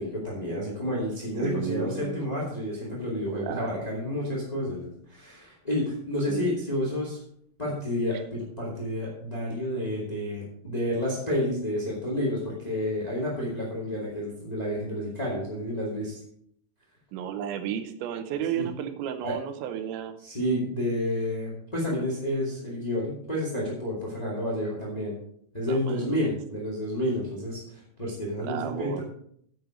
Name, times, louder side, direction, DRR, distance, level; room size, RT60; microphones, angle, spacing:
voice 1, 0.0-7.2 7.6-16.2 18.5-18.6 19.2-19.3 20.2-25.2 25.5-29.0, left 1 dB, 20° left, -4 dB, 1.1 m, -30 dB
voice 2, 1.4-2.2 3.3-3.9 6.3-6.6 17.1-20.2 25.6-26.4 28.4-29.0, right 9 dB, 85° right, 8 dB, 3.2 m, -33 dB
9.5 x 7.9 x 5.1 m, 0.68 s
omnidirectional pair, 5.2 m